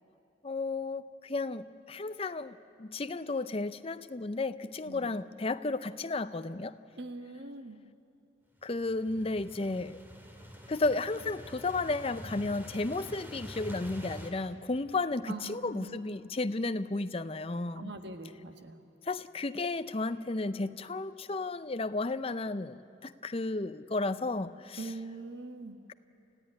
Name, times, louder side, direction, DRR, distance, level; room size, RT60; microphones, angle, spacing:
voice 1, 0.4-6.8 8.6-10.0 10.7-17.9 19.1-24.9, left 3 dB, 30° left, 13 dB, 0.6 m, -33 dB
voice 2, 4.8-5.2 7.0-7.8 15.3-16.0 17.7-18.8 24.8-25.8, right 2 dB, 60° right, 7 dB, 1.4 m, -42 dB
sound 1, 8.7-14.3, equal, 10° right, 2.2 m, -46 dB
28.5 x 15.0 x 9.8 m, 2.9 s
head